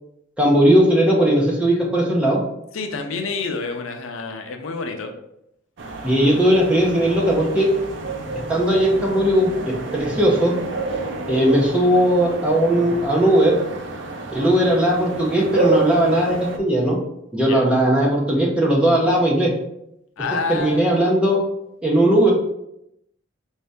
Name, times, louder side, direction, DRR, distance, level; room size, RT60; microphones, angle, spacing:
voice 1, 0.4-2.4 6.0-7.7 8.5-10.5 11.3-13.6 14.3-17.0 17.3-19.5 20.5-21.4 21.8-22.3, right 1 dB, 5° right, -3 dB, 0.7 m, -18 dB
voice 2, 2.7-5.1 17.4-17.6 20.2-20.9, left 4 dB, 70° left, 4 dB, 0.5 m, -28 dB
sound 1, 5.8-16.6, right 2 dB, 55° right, 0.5 m, -29 dB
4.3 x 2.7 x 3.4 m, 0.80 s
head